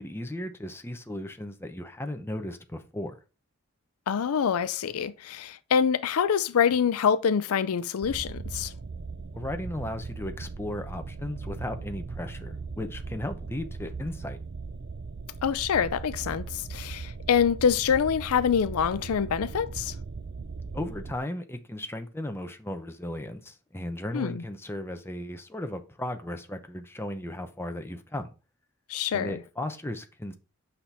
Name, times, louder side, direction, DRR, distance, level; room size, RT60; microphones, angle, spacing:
voice 1, 0.0-3.1 9.3-14.4 20.7-28.3 29.1-30.4, left 1 dB, 10° left, 0.7 m, -36 dB
voice 2, 4.1-8.7 15.4-19.9 24.1-24.4 28.9-29.4, left 7 dB, 80° left, 0.4 m, -25 dB
sound 1, 8.0-21.2, right 4 dB, 45° right, 0.5 m, -39 dB
8.5 x 5.8 x 3.4 m
head